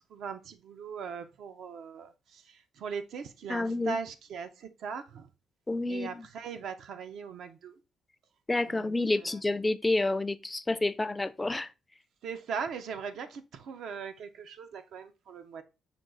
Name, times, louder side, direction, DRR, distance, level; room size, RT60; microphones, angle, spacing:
voice 1, 0.1-2.1 2.8-4.5 4.8-5.2 5.9-7.7 8.7-9.3 12.2-15.6, right 6 dB, 75° right, 0.5 m, -39 dB
voice 2, 3.5-4.0 5.7-6.3 8.5-11.7, left 2 dB, 15° left, 0.3 m, -29 dB
6.0 x 2.3 x 3.7 m
cardioid pair, 90°, 0 cm